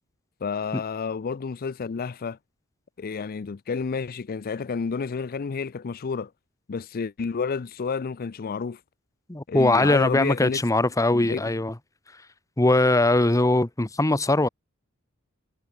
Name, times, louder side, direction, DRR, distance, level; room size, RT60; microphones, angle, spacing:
voice 1, 0.4-2.4 3.0-6.3 6.7-8.8 9.5-10.6 11.1-11.4, left 5 dB, 45° left, 0.4 m, -30 dB
voice 2, 9.3-11.8 12.1-12.2 12.6-14.5, left 2 dB, 15° left, 0.9 m, -21 dB
head